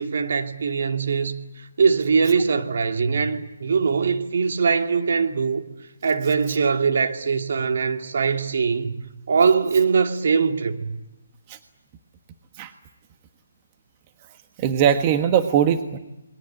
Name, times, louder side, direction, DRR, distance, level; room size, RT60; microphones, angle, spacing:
voice 1, 0.0-1.4 1.8-5.6 6.0-8.9 9.3-10.9, right 5 dB, 60° right, 2.5 m, -21 dB
voice 2, 14.6-16.0, right 9 dB, 25° right, 1.4 m, -20 dB
29.0 x 21.5 x 8.8 m
figure-of-eight pair, 150°, 0 cm